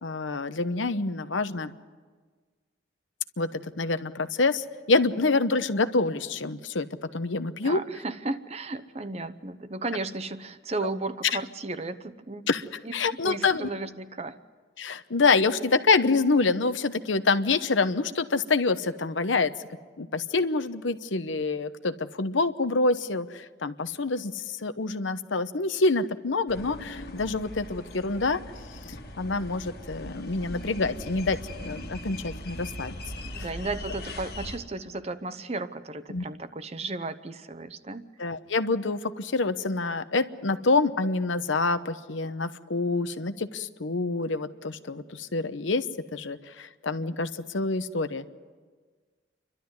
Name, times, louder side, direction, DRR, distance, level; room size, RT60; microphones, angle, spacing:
voice 1, 0.0-1.7 3.4-6.9 7.1-7.8 12.5-12.6 12.9-13.7 14.8-19.5 20.0-28.4 29.2-33.0 36.1-36.2 38.2-45.8 46.1-48.2, left 3 dB, 90° left, 11 dB, 1.0 m, -26 dB
voice 2, 7.6-12.4 12.8-12.9 13.2-14.4 33.3-38.0, right 2 dB, 35° right, 12 dB, 0.8 m, -34 dB
sound 1, 26.5-34.6, left 1 dB, 50° left, 1.7 m, -40 dB
29.0 x 12.5 x 9.5 m, 1.5 s
head